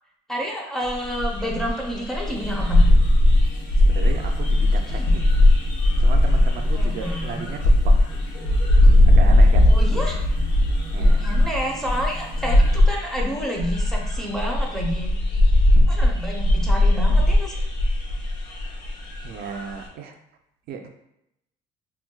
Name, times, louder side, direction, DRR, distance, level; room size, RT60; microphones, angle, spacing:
voice 1, 0.3-2.9 4.9-5.1 6.7-7.4 9.7-10.2 11.2-15.1 15.9-17.6, equal, ahead, -1 dB, 0.6 m, -29 dB
sound 1, 0.8-19.7, left 1 dB, 85° left, 0.8 m, -18 dB
sound 2, 2.2-12.8, right 2 dB, 30° left, 1.1 m, -42 dB
voice 2, 3.8-5.4 6.0-8.0 9.1-9.7 10.9-11.2 19.2-20.2 20.7-20.9, right 6 dB, 70° right, 5 dB, 0.4 m, -35 dB
4.4 x 2.1 x 2.2 m, 0.80 s
cardioid pair, 110°, 17 cm